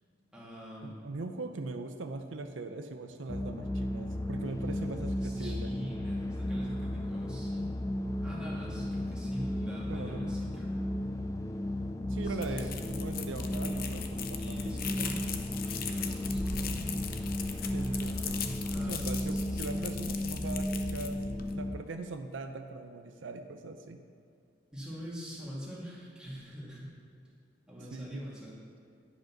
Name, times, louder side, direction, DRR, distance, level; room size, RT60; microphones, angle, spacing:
voice 1, 0.3-1.0 4.7-7.7 8.2-10.8 12.2-12.9 13.4-13.6 14.4-15.3 15.6-17.0 18.7-19.6 24.7-27.0 27.7-28.6, equal, 5° right, -7 dB, 2.1 m, -44 dB
voice 2, 0.8-5.7 9.9-10.3 12.0-14.7 17.7-21.2 21.5-24.0 27.9-28.2, right 3 dB, 85° right, 7 dB, 0.6 m, -41 dB
sound 1, 3.3-21.8, left 1 dB, 15° left, 0.3 m, -34 dB
sound 2, 12.2-21.6, left 6 dB, 50° left, 0.7 m, -40 dB
10.5 x 5.1 x 6.0 m, 2.4 s
head